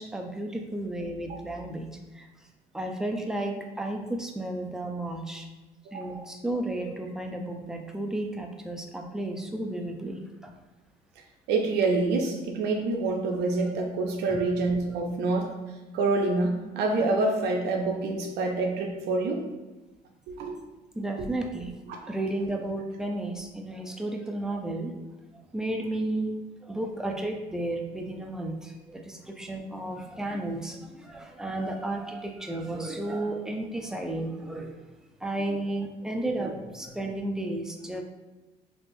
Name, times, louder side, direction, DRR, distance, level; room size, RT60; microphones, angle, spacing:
voice 1, 0.0-1.9 2.1-2.3 2.7-5.5 5.9-10.5 14.3-14.5 21.0-21.7 22.1-24.9 25.5-26.3 26.6-34.7 35.2-38.0, right 1 dB, 5° right, 2 dB, 0.4 m, -33 dB
voice 2, 5.9-6.2 11.5-15.5 15.9-19.4 20.3-20.6 21.9-22.1, right 3 dB, 80° right, 2 dB, 0.5 m, -27 dB
3.3 x 2.5 x 2.6 m, 1.1 s
cardioid pair, 110°, 17 cm